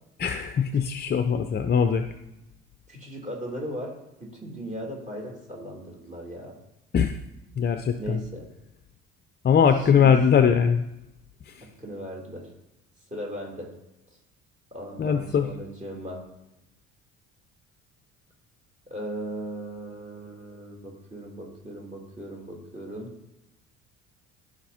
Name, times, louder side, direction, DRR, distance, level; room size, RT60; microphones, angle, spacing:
voice 1, 0.2-2.0 6.9-7.1 7.6-8.2 9.4-10.8 15.0-15.5, left 7 dB, 25° left, 8 dB, 0.5 m, -21 dB
voice 2, 0.7-1.0 2.9-6.6 7.9-8.5 9.7-10.2 11.6-12.5 13.1-13.7 14.7-16.3 18.9-23.1, right 1 dB, 20° right, -1 dB, 3.0 m, -38 dB
14.0 x 5.0 x 2.8 m, 0.92 s
hypercardioid pair, 55°, 41 cm